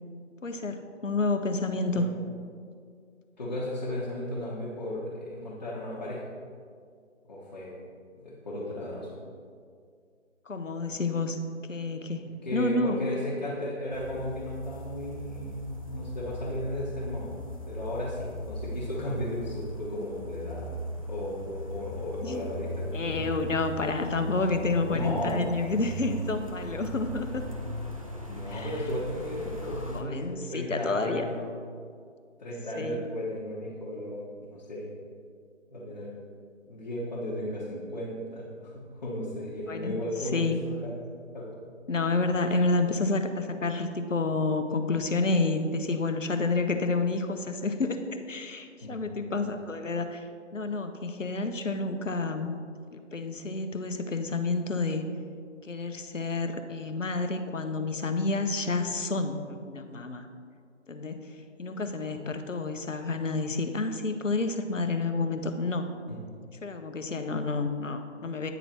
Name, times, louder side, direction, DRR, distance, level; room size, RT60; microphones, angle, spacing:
voice 1, 0.4-2.0 10.5-11.4 11.7-13.0 22.2-22.5 22.9-27.5 28.5-28.7 29.9-31.3 32.7-33.0 39.7-40.0 40.3-40.6 41.9-50.2 50.5-52.5 52.9-55.0 55.6-60.3 60.9-61.2 61.6-65.8 66.6-68.5, left 3 dB, 85° left, 7 dB, 0.8 m, -29 dB
voice 2, 3.3-6.2 7.3-7.8 8.2-9.2 12.4-17.4 17.6-20.7 21.1-23.3 24.9-25.4 28.3-31.6 32.4-34.2 34.5-35.0 35.7-36.1 36.6-40.9 41.3-41.6 48.8-49.2 66.1-66.2, left 1 dB, 35° left, -9 dB, 1.2 m, -35 dB
sound 1, 13.9-30.0, equal, 30° right, 0.5 m, -38 dB
9.2 x 4.0 x 4.4 m, 2.2 s
figure-of-eight pair, 150°, 37 cm